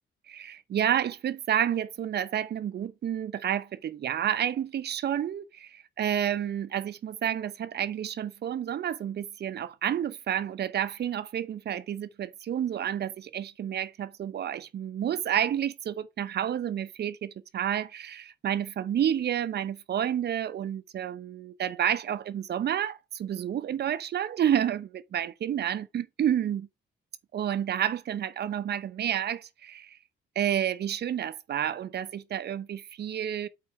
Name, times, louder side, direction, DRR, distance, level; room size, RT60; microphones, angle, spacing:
voice 1, 0.3-26.7 27.3-30.0 30.4-33.5, right 10 dB, 55° right, 0.8 m, -30 dB
8.2 x 4.2 x 4.8 m
cardioid pair, 90°, 20 cm